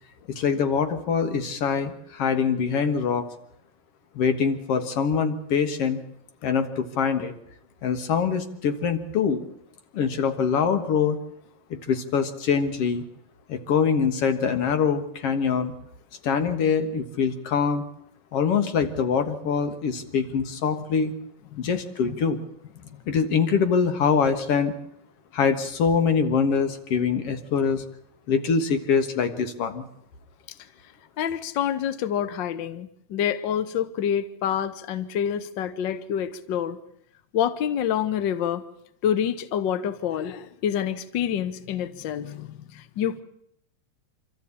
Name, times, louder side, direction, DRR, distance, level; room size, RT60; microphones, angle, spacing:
voice 1, 0.3-3.3 4.2-6.0 6.4-7.3 7.8-9.5 9.9-11.2 11.7-13.0 13.5-15.7 16.2-17.8 18.3-21.1 21.6-22.4 23.1-24.7 25.3-27.8 28.3-29.9, left 6 dB, 55° left, 9 dB, 2.2 m, -24 dB
voice 2, 31.2-36.8 37.3-38.6 39.0-43.2, left 9 dB, 80° left, 13 dB, 1.0 m, -27 dB
25.5 x 13.5 x 8.5 m, 0.73 s
omnidirectional pair, 3.5 m